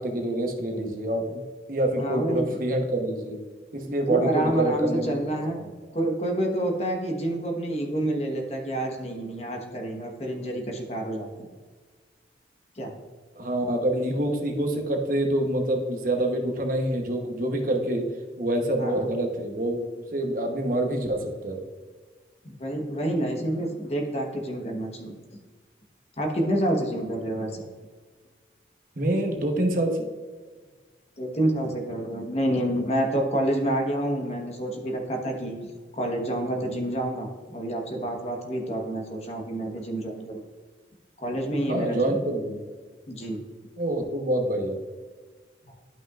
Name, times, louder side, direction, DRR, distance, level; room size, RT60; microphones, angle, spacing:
voice 1, 0.0-1.4 1.7-3.4 3.7-5.2 13.4-18.0 18.4-21.6 29.0-30.1 41.7-42.6 43.8-44.8, right 1 dB, 45° right, 3 dB, 1.0 m, -26 dB
voice 2, 2.0-2.5 4.1-5.6 5.9-11.3 12.8-12.9 18.8-19.1 22.4-25.1 26.2-27.6 31.2-40.4 41.2-42.2 43.1-43.4, right 1 dB, 35° left, 2 dB, 1.2 m, -28 dB
12.0 x 5.7 x 2.5 m, 1.4 s
head